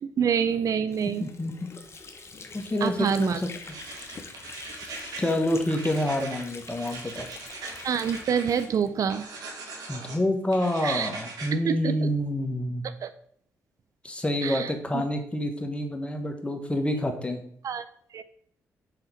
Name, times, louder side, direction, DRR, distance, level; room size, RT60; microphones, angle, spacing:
voice 1, 0.2-1.3 2.8-3.4 7.8-9.3 10.8-11.1 11.5-12.1 13.0-13.1 14.4-15.0 17.6-17.8 18.1-18.2, right 7 dB, 60° right, 12 dB, 0.5 m, -27 dB
Water / Sink (filling or washing), 0.9-9.4, left 4 dB, 40° left, 0.9 m, -45 dB
voice 2, 1.2-1.7 2.5-3.5 5.2-7.3 9.9-12.8 14.0-17.4, left 1 dB, 15° left, 4 dB, 1.4 m, -28 dB
sound 1, 3.6-5.4 5.7-8.7 9.1-10.2 10.5-11.5, right 3 dB, 75° right, 1.6 m, -41 dB
5.0 x 3.8 x 5.7 m, 0.64 s
supercardioid pair, 60°, 7 cm